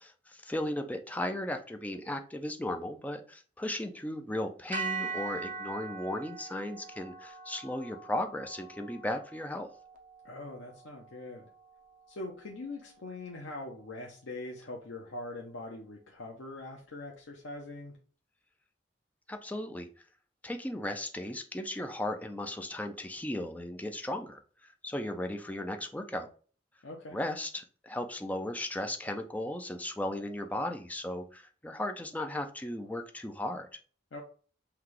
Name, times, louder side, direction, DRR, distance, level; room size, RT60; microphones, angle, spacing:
voice 1, 0.3-9.7 19.3-19.9 20.4-26.3 27.1-33.7, left 1 dB, 10° left, 5 dB, 0.4 m, -36 dB
sound 1, 4.7-13.0, right 4 dB, 45° right, 0.7 m, -42 dB
voice 2, 10.2-11.5 12.1-18.0 26.8-27.2 34.1-34.2, left 2 dB, 75° left, 1 dB, 0.7 m, -42 dB
5.7 x 2.3 x 3.2 m, 0.40 s
head